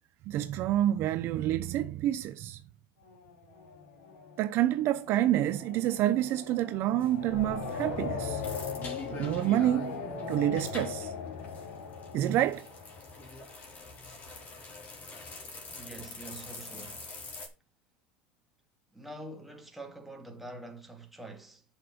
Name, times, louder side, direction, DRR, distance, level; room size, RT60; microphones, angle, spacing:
voice 1, 0.3-2.6 4.4-8.4 9.1-11.1 12.1-12.7, right 13 dB, 45° right, 0.8 m, -28 dB
sound 1, 3.0-13.9, left 5 dB, 85° left, 2.9 m, -40 dB
sound 2, 7.0-17.5, left 3 dB, 30° left, 3.7 m, -45 dB
voice 2, 15.7-17.1 18.9-21.6, right 1 dB, 5° right, 2.1 m, -45 dB
7.5 x 7.2 x 6.0 m
supercardioid pair, 140°, 5 cm